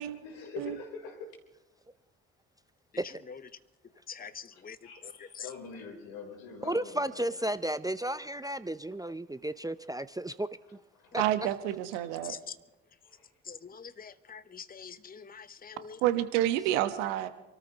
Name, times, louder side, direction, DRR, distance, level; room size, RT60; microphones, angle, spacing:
voice 1, 0.2-1.4 4.5-7.4 11.0-11.2 12.0-12.3 13.0-13.3, left 4 dB, 75° left, 3.8 m, -45 dB
voice 2, 4.1-4.8 5.0-5.5 12.2-12.5 13.4-16.0, left 6 dB, 25° left, 0.9 m, -44 dB
voice 3, 6.6-10.8 11.1-11.2, right 1 dB, 10° right, 0.6 m, -33 dB
voice 4, 11.2-12.3 16.0-17.3, right 13 dB, 80° right, 1.2 m, -28 dB
28.5 x 13.5 x 3.0 m
hypercardioid pair, 45°, 37 cm